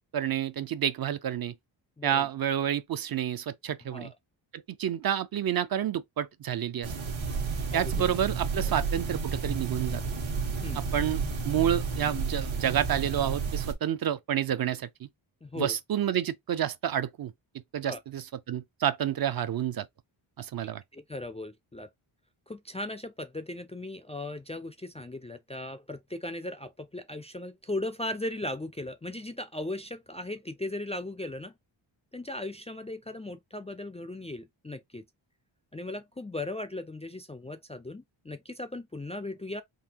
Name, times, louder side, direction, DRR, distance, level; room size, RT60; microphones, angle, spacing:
voice 1, 0.1-1.5 2.0-4.1 4.5-6.9 7.7-10.0 10.7-14.9 15.6-17.3 17.7-19.9 20.4-20.8, right 10 dB, 50° right, 0.5 m, -29 dB
voice 2, 2.0-2.3 3.9-4.1 7.7-8.0 8.7-8.8 10.6-10.9 15.4-15.7 17.8-18.0 20.9-21.9 22.5-31.5 32.1-35.0 35.7-39.6, left 2 dB, 15° left, 0.3 m, -37 dB
sound 1, 6.8-13.7, right 5 dB, 75° right, 1.4 m, -31 dB
3.9 x 2.7 x 2.8 m
wide cardioid pair, 105°, 48 cm